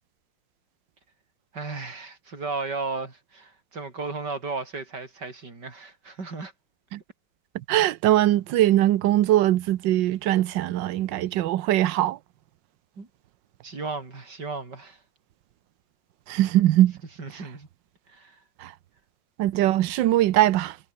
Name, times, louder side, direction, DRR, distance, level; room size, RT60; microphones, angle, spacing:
voice 1, 1.5-6.5 13.0-13.1 13.6-15.0 17.2-17.7 18.1-18.4, right 3 dB, 65° right, 4.6 m, -35 dB
voice 2, 7.5-12.2 16.3-17.0 18.6-18.7 19.4-20.8, right 14 dB, 85° right, 1.4 m, -21 dB
omnidirectional pair, 2.0 m